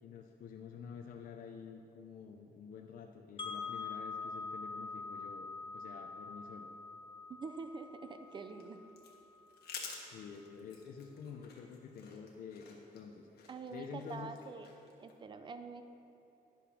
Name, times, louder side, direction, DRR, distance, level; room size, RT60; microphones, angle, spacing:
voice 1, 0.0-6.7 10.0-14.3, left 6 dB, 60° left, 3 dB, 0.5 m, -49 dB
Wind chime, 3.4-9.4, left 4 dB, 30° left, 0.9 m, -45 dB
voice 2, 7.3-8.8 13.5-14.7 15.0-15.8, right 4 dB, 30° right, 8 dB, 0.5 m, -46 dB
sound 1, 8.2-15.1, left 5 dB, 75° left, 1.4 m, -52 dB
10.0 x 5.8 x 6.2 m, 2.9 s
wide cardioid pair, 175°, 17 cm